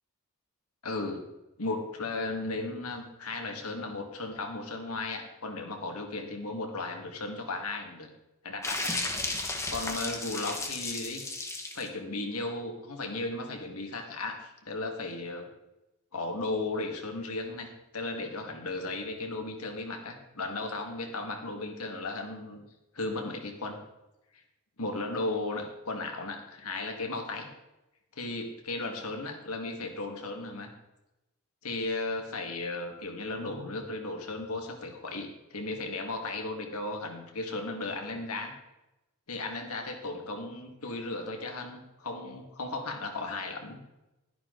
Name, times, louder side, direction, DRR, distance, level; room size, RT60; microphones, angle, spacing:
voice 1, 0.8-1.2 1.6-8.1 8.4-8.9 9.7-11.2 11.7-15.5 16.1-17.7 17.9-22.6 22.9-23.8 24.8-27.5 28.2-30.7 31.6-38.5 39.3-43.8, left 2 dB, 85° left, 3 dB, 2.0 m, -35 dB
sound 1, 8.6-11.9, left 2 dB, 15° left, 1.2 m, -34 dB
12.0 x 11.0 x 3.9 m, 0.97 s
head